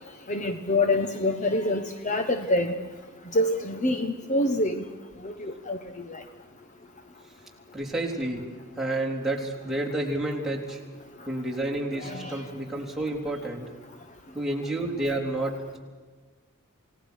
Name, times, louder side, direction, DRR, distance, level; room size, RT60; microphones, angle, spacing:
voice 1, 0.3-2.8 3.3-4.8 5.2-6.2 11.9-12.4, left 1 dB, 35° left, 7 dB, 1.2 m, -26 dB
voice 2, 7.7-10.8 11.3-13.7 14.3-15.8, right 1 dB, ahead, -3 dB, 3.8 m, -30 dB
28.0 x 18.5 x 6.5 m, 1.4 s
head